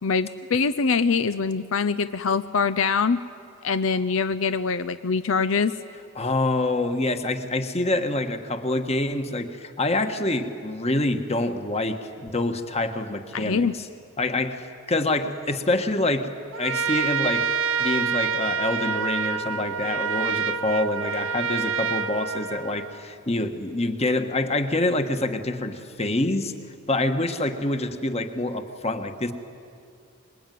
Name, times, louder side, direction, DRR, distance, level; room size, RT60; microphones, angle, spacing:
voice 1, 0.0-3.2 3.6-5.8 13.3-13.7, left 5 dB, 75° left, 12 dB, 0.6 m, -24 dB
voice 2, 6.1-13.9 14.2-16.3 16.6-17.5 17.8-26.5 26.9-29.3, left 2 dB, 30° left, 7 dB, 1.5 m, -26 dB
Trumpet, 16.5-23.1, right 6 dB, 70° right, 0.9 m, -27 dB
25.5 x 22.0 x 9.3 m, 2.5 s
head